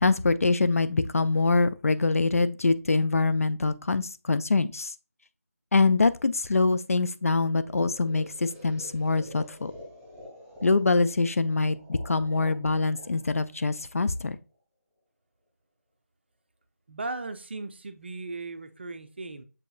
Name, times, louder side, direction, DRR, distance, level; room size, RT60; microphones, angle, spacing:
voice 1, 0.0-4.9 5.7-9.7 10.6-14.4, left 3 dB, 60° left, 0.4 m, -24 dB
sound 1, 7.6-14.5, left 1 dB, ahead, 1.0 m, -48 dB
voice 2, 16.9-19.4, right 3 dB, 40° right, 0.5 m, -37 dB
7.5 x 2.9 x 2.3 m
figure-of-eight pair, 165°, 9 cm